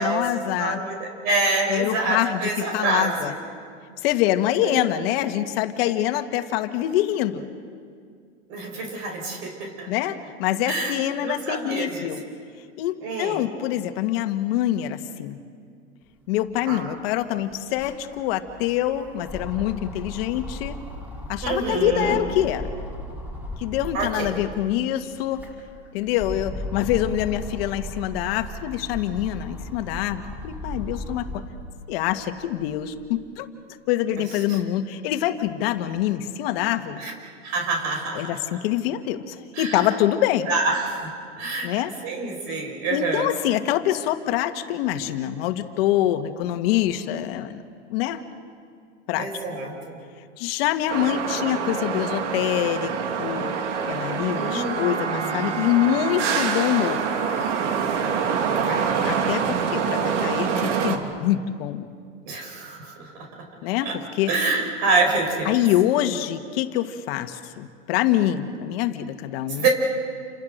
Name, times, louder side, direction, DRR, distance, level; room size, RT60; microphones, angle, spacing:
voice 1, 0.0-0.8 1.7-3.3 4.0-7.4 9.9-12.2 12.8-15.4 16.3-20.8 21.3-22.7 23.6-25.5 25.9-31.4 31.9-33.5 33.9-37.0 38.1-40.5 41.6-41.9 42.9-47.6 47.9-48.2 49.1-49.3 50.4-52.9 53.2-53.5 53.9-57.1 59.0-61.9 63.6-64.3 65.5-69.7, left 12 dB, 55° left, 7 dB, 1.9 m, -25 dB
voice 2, 0.6-3.3 4.6-4.8 8.5-9.9 10.7-11.0 11.2-12.0 13.0-13.4 16.7-16.8 21.4-22.2 23.9-24.3 34.5-34.6 37.0-37.1 37.4-38.4 39.5-39.8 40.5-41.7 42.0-43.3 49.2-49.9 54.4-55.6 58.6-58.9 62.3-63.1 63.8-63.9 64.3-65.5 69.6-69.7, right 3 dB, 45° right, 2 dB, 5.9 m, -26 dB
sound 1, 16.5-16.6 16.8-24.6 25.1-31.6 32.1-33.3, left 1 dB, 5° right, 5.1 m, -36 dB
sound 2, 50.9-61.0, right 6 dB, 75° right, 3.0 m, -25 dB
29.5 x 26.5 x 6.7 m, 2.2 s
hypercardioid pair, 135°, 36 cm